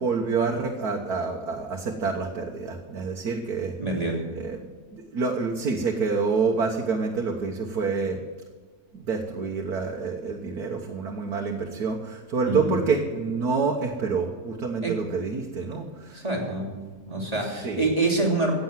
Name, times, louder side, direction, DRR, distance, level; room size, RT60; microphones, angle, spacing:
voice 1, 0.0-3.7 4.3-4.6 4.9-8.2 8.9-16.2 17.6-17.8, right 4 dB, 80° right, 1 dB, 1.7 m, -27 dB
voice 2, 3.8-4.2 12.4-12.8 14.8-15.0 16.1-16.8 17.1-18.5, right 2 dB, 25° right, -1 dB, 3.0 m, -26 dB
15.0 x 8.7 x 7.4 m, 1.5 s
omnidirectional pair, 1.6 m